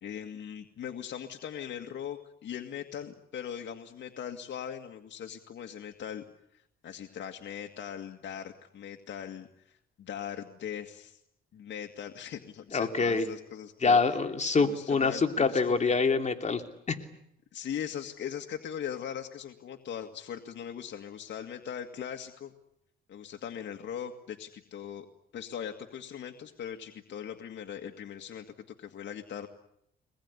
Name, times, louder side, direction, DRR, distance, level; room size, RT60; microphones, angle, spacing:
voice 1, 0.0-6.2 6.5-11.2 11.5-14.0 14.6-15.9 17.5-22.5 23.1-25.1 25.3-29.5, left 9 dB, 65° left, 4 dB, 2.2 m, -40 dB
voice 2, 12.7-13.2 13.8-16.6 16.9-17.0, left 4 dB, 35° left, 6 dB, 3.0 m, -25 dB
23.5 x 20.5 x 9.9 m, 0.75 s
cardioid pair, 90°, 20 cm